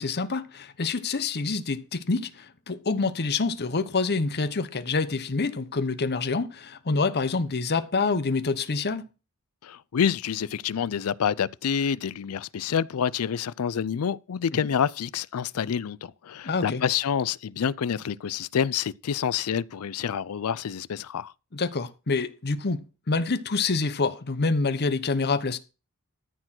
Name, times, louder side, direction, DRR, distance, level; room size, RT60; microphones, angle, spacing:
voice 1, 0.0-9.1 16.4-16.8 21.5-25.6, left 4 dB, 50° left, 0.9 m, -27 dB
voice 2, 9.6-21.3, left 7 dB, 75° left, 0.4 m, -28 dB
13.5 x 4.5 x 6.1 m
head